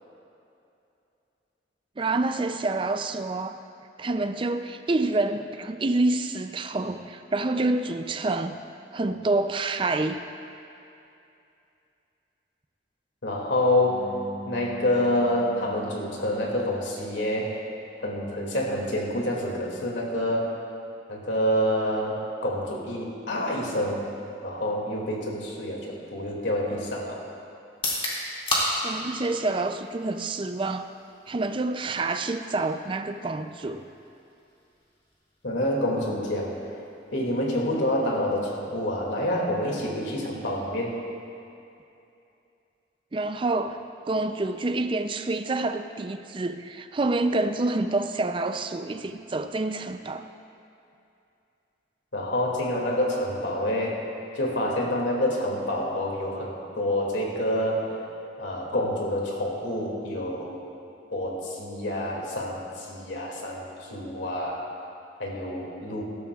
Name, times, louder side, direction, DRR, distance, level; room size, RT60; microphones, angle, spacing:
voice 1, 2.0-3.6 4.0-8.6 8.9-10.2 28.8-30.9 31.3-33.9 43.1-43.8 44.1-50.3, right 2 dB, 30° right, 8 dB, 0.4 m, -27 dB
voice 2, 13.2-17.6 18.0-20.5 21.1-24.0 24.4-27.2 35.4-36.5 37.1-41.0 52.1-54.0 54.3-57.9 58.4-60.5 61.1-64.6 65.2-66.0, left 1 dB, 85° left, -2 dB, 2.4 m, -27 dB
sound 1, 27.7-41.5, left 1 dB, 30° left, 2.3 m, -37 dB
17.5 x 13.0 x 2.4 m, 2.7 s
head